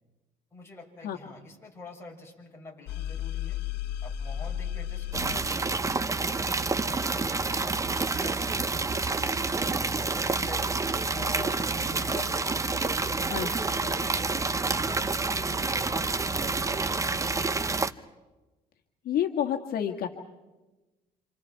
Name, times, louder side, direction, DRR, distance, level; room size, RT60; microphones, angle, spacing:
voice 1, 0.5-3.6 4.0-6.4 6.8-7.5 8.1-8.7 9.4-9.8 10.1-13.2 13.5-14.5 14.9-17.6, left 3 dB, 15° left, -2 dB, 6.8 m, -46 dB
sound 1, 2.9-6.4, left 10 dB, 80° left, 1.4 m, -35 dB
sound 2, 5.1-17.9, right 3 dB, 20° right, 0.8 m, -28 dB
voice 2, 19.1-20.1, left 10 dB, 65° left, 2 dB, 1.8 m, -28 dB
28.5 x 27.5 x 4.7 m, 1.1 s
cardioid pair, 110°, 17 cm